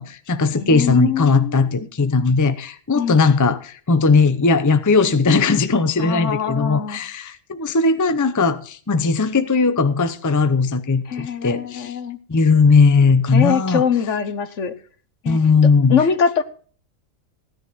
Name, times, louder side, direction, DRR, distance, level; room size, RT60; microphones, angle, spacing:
voice 1, 0.0-12.0 12.3-13.8 15.3-16.0, left 4 dB, 20° left, 0.6 m, -18 dB
voice 2, 0.6-1.8 2.9-3.2 6.0-7.0 11.1-12.2 13.3-14.7 15.2-15.4 15.9-16.4, left 7 dB, 65° left, 1.4 m, -23 dB
16.0 x 10.5 x 4.1 m
omnidirectional pair, 1.4 m